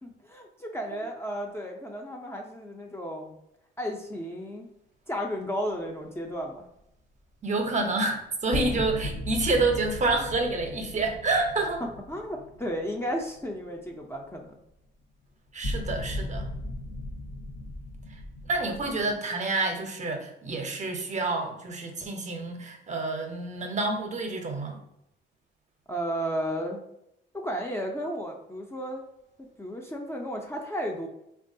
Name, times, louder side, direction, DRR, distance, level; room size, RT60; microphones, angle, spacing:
voice 1, 0.0-3.4 3.8-4.7 5.1-6.7 11.8-14.6 25.9-26.8 27.3-29.0 29.4-31.1, equal, 15° left, 0 dB, 0.4 m, -33 dB
voice 2, 7.4-11.8 15.5-16.5 18.5-24.8, right 3 dB, 35° right, 4 dB, 0.6 m, -28 dB
sound 1, 8.5-13.6 13.9-14.0 15.6-19.1, left 1 dB, 45° left, 0.8 m, -36 dB
3.4 x 2.3 x 2.6 m, 0.80 s
cardioid pair, 90°, 20 cm